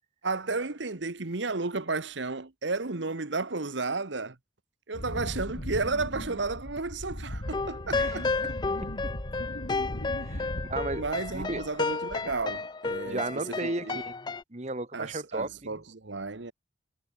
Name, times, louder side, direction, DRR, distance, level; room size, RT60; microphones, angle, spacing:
voice 1, 0.2-4.4 4.9-8.5 10.9-14.0 14.9-16.5, right 3 dB, 75° right, 1.4 m, -33 dB
Wind, 4.9-11.8 12.1-12.6, left 1 dB, 60° left, 3.2 m, -38 dB
Haunting piano melody, 7.4-14.4, left 3 dB, 25° left, 0.4 m, -32 dB
voice 2, 7.9-8.2 10.0-11.0 11.3-11.6 13.0-15.8, right 2 dB, 35° right, 1.3 m, -35 dB
head